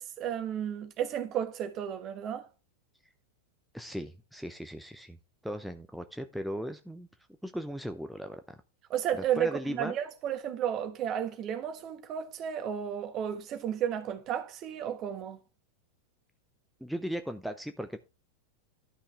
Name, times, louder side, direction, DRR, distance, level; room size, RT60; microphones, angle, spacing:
voice 1, 0.0-2.5 8.9-15.4, right 9 dB, 35° right, 1.4 m, -33 dB
voice 2, 3.7-5.2 5.4-7.1 7.4-8.6 9.1-10.0 16.8-18.0, equal, ahead, 0.7 m, -37 dB
12.0 x 5.6 x 3.4 m
figure-of-eight pair, 90°, 0 cm